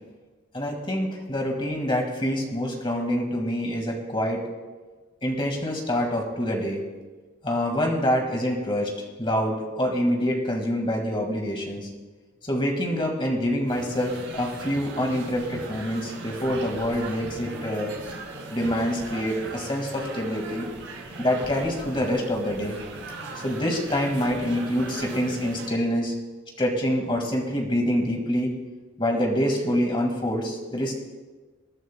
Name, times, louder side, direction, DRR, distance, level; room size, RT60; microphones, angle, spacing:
voice 1, 0.5-4.4 5.2-6.8 7.4-8.9 9.2-11.9 12.5-17.9 18.5-20.7 21.2-22.8 23.4-26.1 26.6-28.5 29.0-30.9, equal, 25° left, 1 dB, 1.9 m, -26 dB
sound 1, 13.7-25.7, right 2 dB, 60° right, 2.2 m, -38 dB
26.5 x 11.0 x 2.3 m, 1.3 s
head